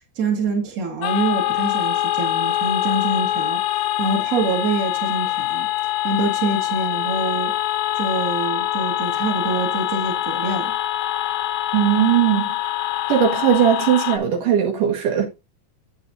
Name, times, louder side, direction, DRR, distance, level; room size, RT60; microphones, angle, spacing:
voice 1, 0.2-3.6 4.0-5.7 6.0-7.6 8.0-10.8, right 3 dB, 30° right, 2.2 m, -25 dB
sound 1, 1.0-14.2, left 13 dB, 85° left, 2.6 m, -24 dB
voice 2, 11.7-12.6 13.1-15.3, right 9 dB, 75° right, 3.4 m, -18 dB
9.8 x 8.4 x 2.6 m
omnidirectional pair, 3.7 m